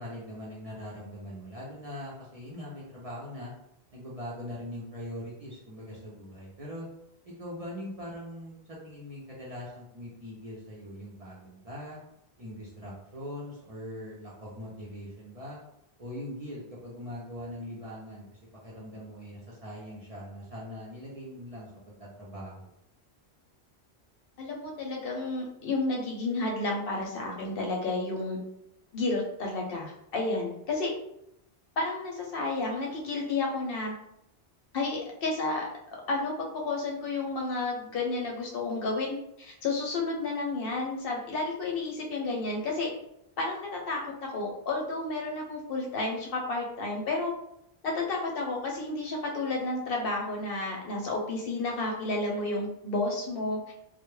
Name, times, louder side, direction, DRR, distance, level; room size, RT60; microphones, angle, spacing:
voice 1, 0.0-3.5 3.9-6.9 7.3-12.0 12.4-15.6 16.0-22.7, left 1 dB, 45° right, -6 dB, 0.5 m, -41 dB
voice 2, 24.4-28.4 28.9-30.9 31.8-33.9 34.7-35.7 36.1-42.9 43.4-47.3 47.8-53.7, left 2 dB, 65° left, -1 dB, 0.7 m, -31 dB
2.1 x 2.0 x 3.0 m, 0.79 s
omnidirectional pair, 1.1 m